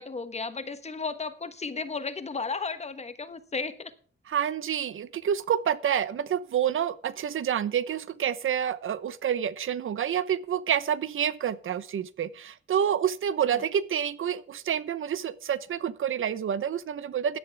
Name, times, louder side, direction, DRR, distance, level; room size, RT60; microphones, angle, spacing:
voice 1, 0.0-3.9 13.5-13.7, left 4 dB, 30° left, 11 dB, 1.2 m, -34 dB
voice 2, 4.3-17.4, right 9 dB, 75° right, 16 dB, 0.9 m, -28 dB
16.5 x 11.5 x 3.5 m, 0.43 s
wide cardioid pair, 155°, 21 cm